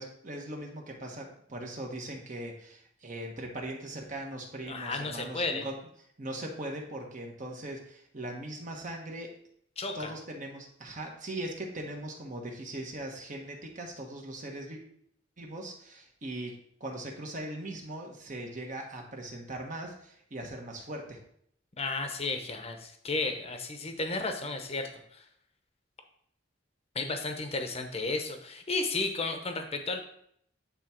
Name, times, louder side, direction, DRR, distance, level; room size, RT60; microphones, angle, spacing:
voice 1, 0.0-5.8 6.2-9.3 9.9-14.8 15.4-16.5 16.8-21.2, right 1 dB, 45° right, 1 dB, 1.3 m, -40 dB
voice 2, 4.7-5.7 9.8-10.1 21.8-25.2 26.9-30.0, left 3 dB, 35° left, 5 dB, 0.9 m, -33 dB
8.6 x 3.6 x 4.4 m, 0.69 s
head